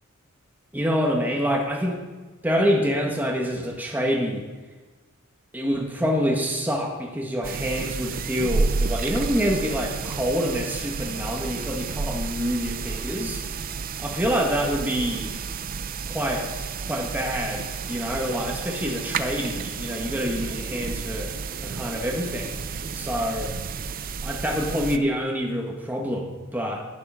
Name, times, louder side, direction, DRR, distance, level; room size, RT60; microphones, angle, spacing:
voice 1, 0.7-2.0 2.4-4.5 5.5-13.4 14.0-15.3 16.1-16.5 16.8-21.3 21.6-22.6 22.9-23.5 24.2-26.9, equal, 10° right, 0 dB, 1.4 m, -26 dB
sound 1, 7.4-25.0, right 4 dB, 40° right, 0.5 m, -31 dB
11.0 x 9.8 x 5.6 m, 1.3 s
head